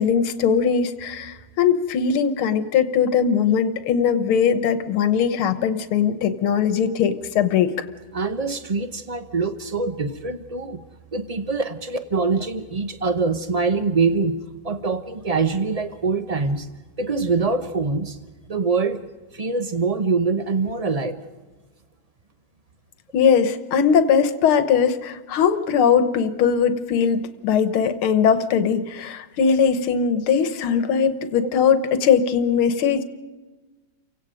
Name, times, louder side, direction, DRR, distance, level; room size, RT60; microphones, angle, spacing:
voice 1, 0.0-7.7 23.1-33.0, left 7 dB, 90° left, 10 dB, 2.0 m, -20 dB
voice 2, 8.1-10.8 11.1-14.4 14.6-16.7 17.0-18.2 18.5-19.0 19.3-21.2, right 4 dB, 65° right, 9 dB, 0.3 m, -24 dB
29.5 x 17.5 x 5.1 m, 1.2 s
omnidirectional pair, 2.3 m